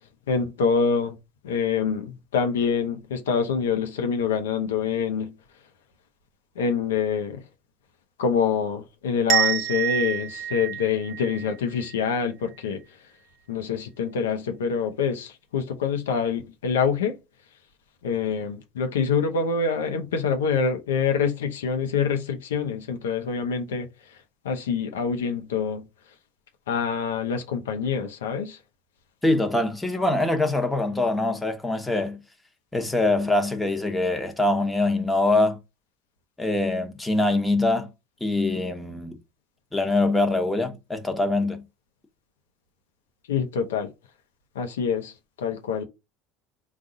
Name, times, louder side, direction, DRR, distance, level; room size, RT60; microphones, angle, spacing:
voice 1, 0.3-1.2 1.4-5.3 6.6-7.4 8.2-12.8 13.5-17.2 18.0-23.9 24.4-25.8 26.7-28.6 43.3-43.9 44.5-45.8, left 6 dB, 85° left, 0.7 m, -26 dB
sound 1, 9.3-12.1, right 11 dB, 55° right, 0.7 m, -27 dB
voice 2, 29.2-32.2 32.7-35.6 36.4-37.9 38.2-39.2 39.7-41.6, left 2 dB, 10° left, 1.0 m, -23 dB
4.0 x 2.4 x 3.8 m
hypercardioid pair, 80°, 0 cm